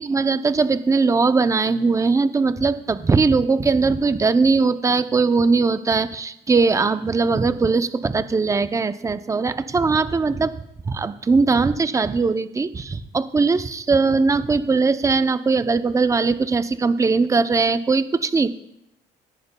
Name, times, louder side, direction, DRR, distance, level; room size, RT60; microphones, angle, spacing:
voice 1, 0.0-10.5 10.9-18.5, right 4 dB, 20° right, 12 dB, 0.5 m, -20 dB
16.5 x 11.0 x 2.2 m, 0.77 s
cardioid pair, 110°, 17 cm